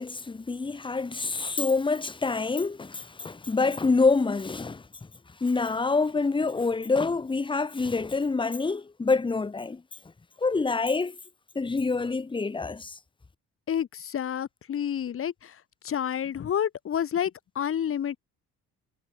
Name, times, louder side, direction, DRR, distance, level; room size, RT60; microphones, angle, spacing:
voice 1, 0.0-4.9 5.4-9.8 10.4-11.2 11.5-13.0, left 4 dB, 15° left, 1.1 m, -26 dB
voice 2, 13.7-15.6 15.8-18.2, left 9 dB, 45° left, 1.7 m, -29 dB
cardioid pair, 95°, 30 cm